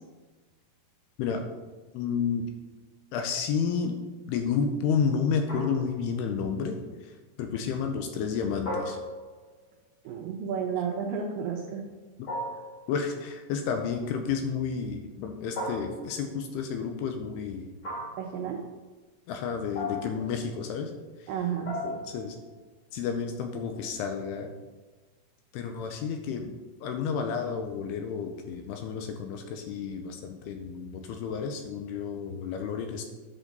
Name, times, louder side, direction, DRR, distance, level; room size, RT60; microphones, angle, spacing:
voice 1, 1.9-2.4 3.1-4.0 4.3-7.1 7.4-9.0 12.2-12.3 12.9-17.7 19.3-20.9 21.2-21.3 22.1-22.4 22.9-24.5 25.5-26.5 26.8-33.1, left 6 dB, 85° left, 5 dB, 2.4 m, -31 dB
sound 1, 5.5-6.1 8.7-9.5 12.3-12.9 15.5-16.3 17.8-18.4 19.8-20.3 21.7-22.3, left 1 dB, 40° left, 2.4 m, -36 dB
voice 2, 10.0-11.9 18.2-18.6 21.3-22.0, right 7 dB, 85° right, 0 dB, 1.9 m, -32 dB
9.9 x 6.2 x 4.0 m, 1.3 s
omnidirectional pair, 5.0 m